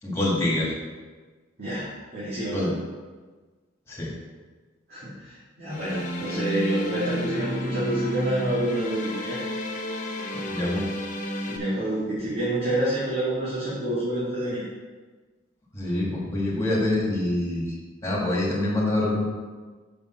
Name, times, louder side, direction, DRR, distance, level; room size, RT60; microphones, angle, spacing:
voice 1, 0.0-0.7 2.5-2.7 3.9-4.1 10.5-10.9 15.7-17.7 18.0-19.2, left 1 dB, 15° left, -5 dB, 2.1 m, -25 dB
voice 2, 2.1-2.7 4.9-9.4 11.3-14.6, right 1 dB, 50° right, -10 dB, 2.5 m, -28 dB
sound 1, 5.7-11.6, equal, 40° left, 0.9 m, -31 dB
6.8 x 5.4 x 5.9 m, 1.4 s
head